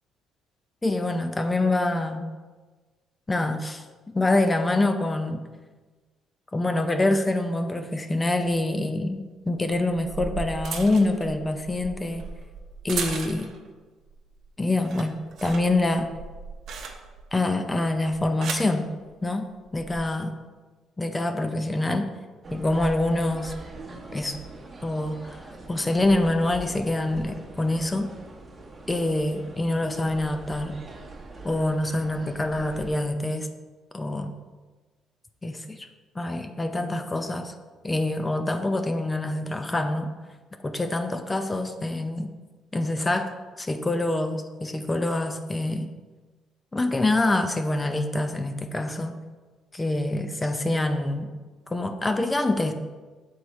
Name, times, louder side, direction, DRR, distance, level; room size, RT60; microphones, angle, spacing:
voice 1, 0.8-2.3 3.3-3.8 4.1-5.4 6.5-12.2 12.8-13.5 14.6-15.1 15.4-16.1 17.3-18.9 19.2-20.3 21.0-22.1 22.5-23.5 24.1-24.4 24.8-28.1 28.9-30.8 31.4-33.5 33.9-34.3 35.4-35.9 36.1-37.5 37.8-40.1 40.6-42.3 42.7-43.3 43.6-45.9 46.7-49.2 49.7-51.3 51.7-52.7, left 2 dB, 20° left, 7 dB, 0.6 m, -25 dB
sound 1, 9.7-13.7 14.1-14.5 14.7-17.3 18.1-18.8 19.7-20.0, right 5 dB, 65° right, 0.8 m, -36 dB
sound 2, 22.4-32.9, right 3 dB, 30° right, 1.3 m, -42 dB
6.3 x 4.6 x 4.2 m, 1.3 s
supercardioid pair, 65°, 0 cm